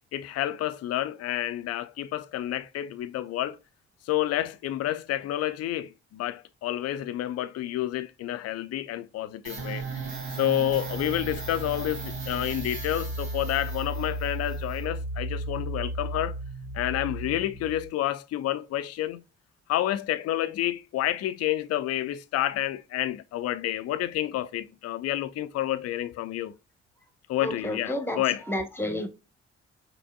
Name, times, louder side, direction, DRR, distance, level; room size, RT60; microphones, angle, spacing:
voice 1, 0.1-3.6 4.0-10.0 10.3-16.4 16.7-19.2 19.7-26.5 27.3-28.4, left 13 dB, 50° left, 0.5 m, -29 dB
sound 1, 9.4-17.9, right 2 dB, 70° right, 2.2 m, -34 dB
voice 2, 27.4-28.2 28.5-29.1, left 1 dB, 5° left, 1.1 m, -30 dB
5.9 x 3.3 x 2.3 m
figure-of-eight pair, 45°, 33 cm